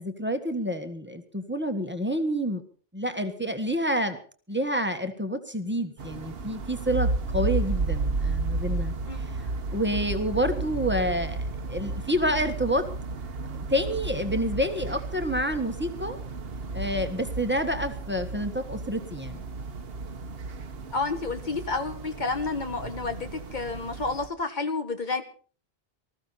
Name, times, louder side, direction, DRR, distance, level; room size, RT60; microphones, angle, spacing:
voice 1, 0.0-2.6 2.9-4.2 4.5-8.9 9.7-12.9 13.7-16.2 16.7-19.4, equal, 10° right, 6 dB, 1.5 m, -28 dB
sound 1, 6.0-24.3, right 3 dB, 70° right, 1.3 m, -33 dB
voice 2, 9.0-9.3 20.9-25.2, left 3 dB, 45° left, 7 dB, 1.6 m, -30 dB
19.5 x 14.5 x 4.2 m, 0.42 s
omnidirectional pair, 1.1 m